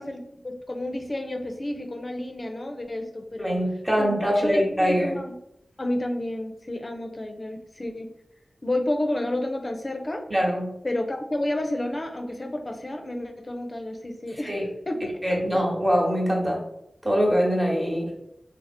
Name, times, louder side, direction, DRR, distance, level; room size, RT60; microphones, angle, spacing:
voice 1, 0.0-3.6 4.0-5.3 5.8-8.1 8.6-10.2 10.8-14.6 14.9-15.2 15.5-15.6 17.9-18.0, left 1 dB, 40° left, 5 dB, 0.5 m, -30 dB
voice 2, 3.4-5.2 10.3-10.7 14.5-14.6 15.0-16.6 17.0-18.1, equal, 15° right, -2 dB, 1.2 m, -23 dB
3.2 x 2.0 x 3.5 m, 0.81 s
cardioid pair, 40°, 0 cm